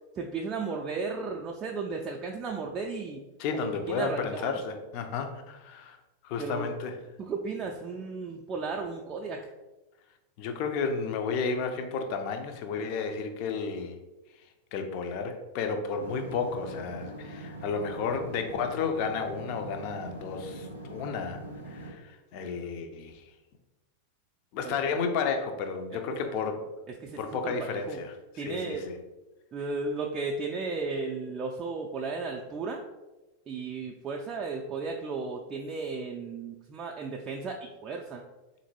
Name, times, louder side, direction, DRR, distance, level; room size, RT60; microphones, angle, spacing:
voice 1, 0.2-3.2 3.5-4.5 6.4-6.7 7.3-9.4 24.6-25.1 27.0-27.2 27.4-28.0 28.4-28.8 29.5-32.8 33.5-38.2, right 4 dB, 25° right, 0 dB, 0.3 m, -34 dB
voice 2, 3.4-6.0 6.2-7.0 10.4-14.0 14.7-21.4 21.7-23.2 24.5-26.7 27.2-29.0, left 5 dB, 45° left, 6 dB, 0.4 m, -32 dB
sound 1, 16.0-21.9, right 1 dB, 85° left, 0.7 m, -43 dB
3.8 x 2.6 x 2.9 m, 1.1 s
figure-of-eight pair, 90°, 0 cm